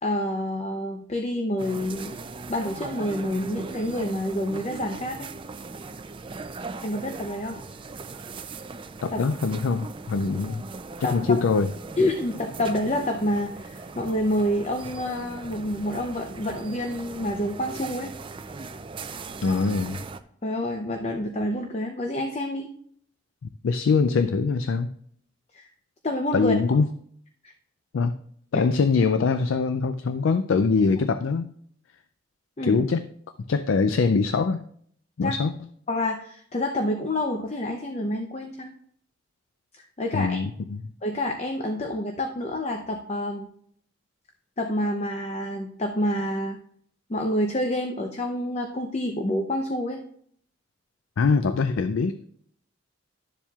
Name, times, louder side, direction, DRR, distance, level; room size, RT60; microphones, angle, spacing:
voice 1, 0.0-2.2 2.5-5.3 6.8-7.6 9.1-9.2 11.0-11.2 12.0-18.1 20.4-22.7 25.5-25.7 26.0-26.5 28.5-28.7 32.6-32.8 35.2-35.4 35.9-38.7 40.0-40.4 41.0-43.5 44.6-46.6 47.1-50.0, left 1 dB, 35° left, 4 dB, 0.6 m, -28 dB
sound 1, 1.6-20.2, right 3 dB, 25° right, 0.4 m, -39 dB
voice 2, 9.0-10.6 11.0-11.7 19.4-20.0 23.6-24.9 26.3-26.9 27.9-28.1 28.5-31.5 32.6-33.1 33.5-34.6 35.2-35.5 40.1-40.8 51.2-52.2, left 4 dB, 90° left, 11 dB, 0.4 m, -23 dB
12.0 x 7.1 x 2.4 m, 0.64 s
head